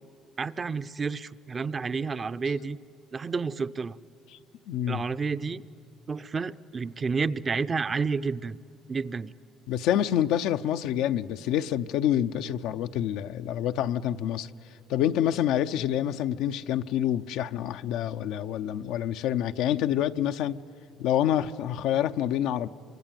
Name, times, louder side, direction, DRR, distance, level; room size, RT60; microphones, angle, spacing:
voice 1, 0.4-2.8 3.1-4.0 4.9-5.6 6.1-8.6 8.9-9.3, right 4 dB, 30° right, 0.6 m, -30 dB
voice 2, 4.7-5.0 9.7-14.5 14.9-20.6 21.0-22.7, left 11 dB, 80° left, 0.6 m, -27 dB
27.0 x 24.5 x 9.1 m
cardioid pair, 100°, 0 cm